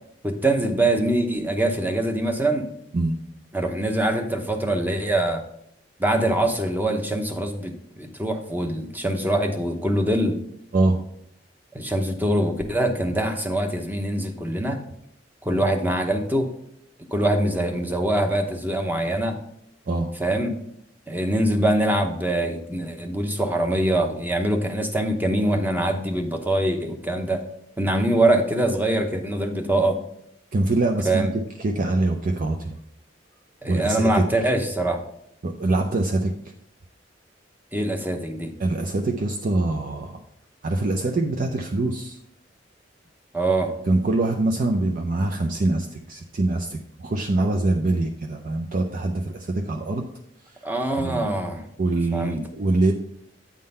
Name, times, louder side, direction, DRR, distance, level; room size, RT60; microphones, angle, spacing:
voice 1, 0.2-2.7 3.5-5.4 6.0-10.4 11.7-14.8 15.4-16.5 17.1-19.4 20.2-20.6 21.1-27.4 27.8-30.0 31.0-31.3 33.6-35.0 37.7-38.5 43.3-43.7 50.6-51.6 52.1-52.4, right 1 dB, 10° right, 4 dB, 0.8 m, -23 dB
voice 2, 30.5-31.3 31.6-32.7 33.7-34.3 35.4-36.3 38.6-40.2 40.6-42.2 43.9-50.1 51.0-51.3 51.8-52.9, right 2 dB, 50° right, 3 dB, 0.5 m, -24 dB
8.5 x 3.8 x 5.4 m, 0.73 s
head